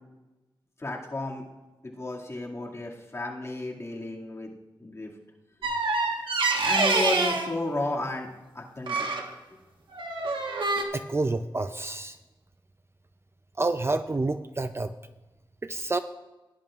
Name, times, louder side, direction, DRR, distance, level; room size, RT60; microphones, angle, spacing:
voice 1, 0.8-1.4 1.8-4.5 4.8-5.1 6.6-8.3 8.5-9.0, left 2 dB, 35° left, -3 dB, 2.2 m, -33 dB
sound 1, 5.6-7.5 8.9-9.3 9.9-10.8, right 3 dB, 70° right, 1.4 m, -26 dB
voice 2, 10.9-12.2 13.6-14.9 15.6-16.0, right 2 dB, 30° right, 10 dB, 0.5 m, -28 dB
17.0 x 10.5 x 2.4 m, 1.1 s
wide cardioid pair, 95°, 9 cm